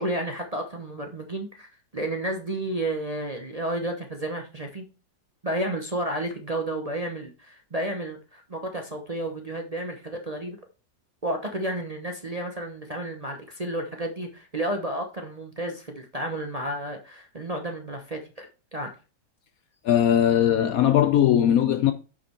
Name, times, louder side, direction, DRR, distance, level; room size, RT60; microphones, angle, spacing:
voice 1, 0.0-4.9 5.4-10.6 11.2-18.5 18.7-18.9, right 1 dB, 30° right, 0.7 m, -31 dB
voice 2, 19.8-21.9, left 10 dB, 70° left, 0.9 m, -19 dB
8.6 x 5.1 x 4.4 m
omnidirectional pair, 1.9 m